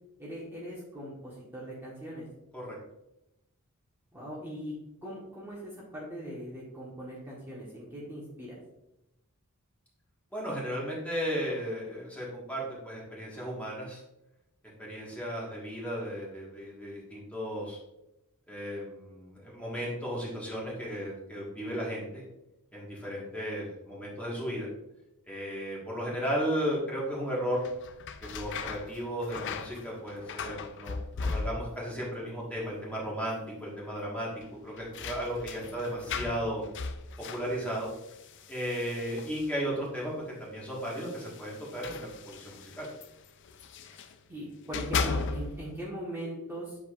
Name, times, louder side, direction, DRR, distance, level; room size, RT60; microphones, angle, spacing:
voice 1, 0.2-2.3 4.1-4.8 5.0-8.6 44.3-46.8, equal, 10° right, -7 dB, 1.3 m, -40 dB
voice 2, 10.3-14.0 14.8-17.8 18.5-22.2 22.7-24.7 25.2-27.6 28.2-34.3 34.6-36.6 37.3-37.9 38.5-40.1 40.4-42.9, equal, 5° left, -5 dB, 1.5 m, -35 dB
sound 1, 27.5-32.0 32.2-32.9 33.2-33.3 34.4-39.8 40.7-44.2 44.6-45.7, left 4 dB, 55° left, 0.4 m, -38 dB
8.0 x 4.9 x 2.5 m, 0.89 s
head